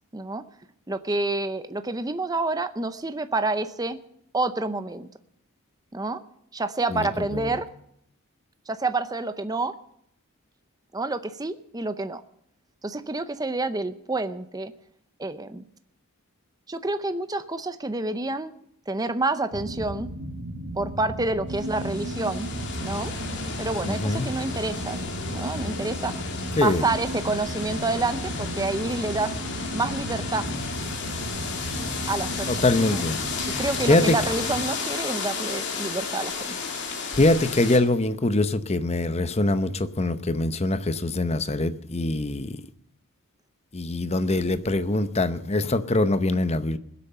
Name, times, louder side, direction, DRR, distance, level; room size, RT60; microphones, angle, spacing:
voice 1, 0.1-0.4 0.9-4.0 4.3-5.1 5.9-6.2 6.5-7.7 8.7-9.8 10.9-12.2 12.8-14.7 15.2-15.6 16.7-18.5 18.9-20.1 20.8-22.5 22.8-23.1 23.6-26.1 26.6-29.3 29.7-30.5 32.1-33.0 33.6-36.6, right 2 dB, 15° right, 0.6 m, -28 dB
sound 1, 19.5-34.7, right 1 dB, 70° right, 1.9 m, -34 dB
sound 2, 21.5-37.8, left 5 dB, 50° left, 2.8 m, -33 dB
voice 2, 23.8-24.3 26.6-26.8 32.5-33.2 33.5-34.1 37.1-42.6 43.7-46.8, left 2 dB, 30° left, 0.8 m, -23 dB
20.5 x 8.5 x 6.8 m
head